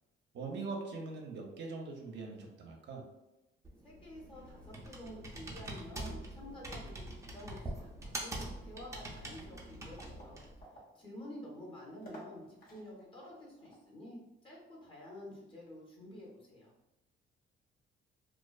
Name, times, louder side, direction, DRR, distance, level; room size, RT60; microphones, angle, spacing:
voice 1, 0.3-3.0, right 3 dB, 65° right, 1 dB, 0.5 m, -42 dB
Computer keyboard, 3.6-10.6, right 1 dB, 15° right, 0.5 m, -44 dB
voice 2, 3.8-10.4 10.9-16.7, left 1 dB, 25° left, -3 dB, 1.0 m, -50 dB
sound 1, 7.8-13.9, equal, 50° left, 1.0 m, -58 dB
2.4 x 2.3 x 2.3 m, 0.97 s
cardioid pair, 90°, 20 cm